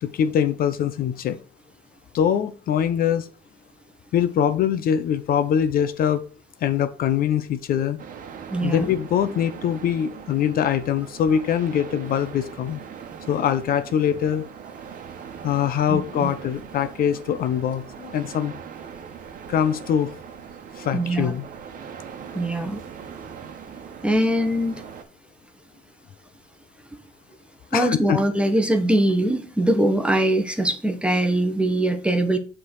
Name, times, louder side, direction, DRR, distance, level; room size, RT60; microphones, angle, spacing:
voice 1, 0.0-1.4 2.1-3.3 4.1-6.2 6.6-8.0 8.6-12.8 13.3-14.5 15.4-18.5 19.5-20.1 20.8-21.4 27.7-28.2, left 9 dB, 60° left, 11 dB, 0.8 m, -23 dB
sound 1, 8.0-25.0, right 7 dB, 55° right, 1.1 m, -40 dB
voice 2, 8.5-8.9 15.9-16.3 20.9-21.3 22.3-22.8 24.0-24.8 27.7-32.4, right 1 dB, 5° right, 7 dB, 1.1 m, -22 dB
7.6 x 3.8 x 6.3 m, 0.37 s
cardioid pair, 110°, 17 cm